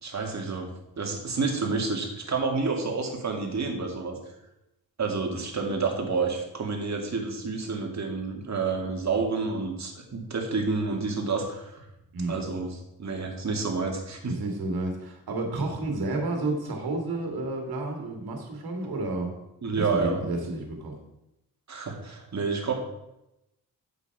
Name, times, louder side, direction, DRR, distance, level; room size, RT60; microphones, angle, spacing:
voice 1, 0.0-0.7 1.0-4.2 5.0-11.8 12.3-14.3 19.6-20.2 21.7-22.7, right 4 dB, 50° right, 2 dB, 2.3 m, -29 dB
voice 2, 14.3-19.3 19.7-21.0, right 2 dB, 80° right, 2 dB, 2.2 m, -31 dB
8.2 x 7.4 x 4.8 m, 0.88 s
cardioid pair, 80°, 36 cm